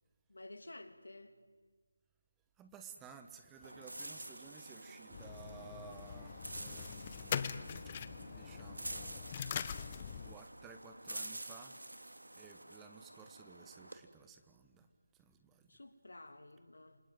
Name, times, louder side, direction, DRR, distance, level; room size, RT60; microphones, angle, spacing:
voice 1, 0.3-1.4 15.7-17.0, left 2 dB, 75° left, 9 dB, 2.6 m, -52 dB
voice 2, 2.6-7.5 7.8-7.9 8.2-9.3 10.2-11.8 12.4-15.8, right 6 dB, 10° right, 7 dB, 1.1 m, -56 dB
sound 1, 3.6-14.0, right 1 dB, 85° right, 2.8 m, -49 dB
sound 2, 5.1-10.3, left 8 dB, 25° left, 1.0 m, -42 dB
28.5 x 20.0 x 9.4 m, 1.5 s
figure-of-eight pair, 165°, 0 cm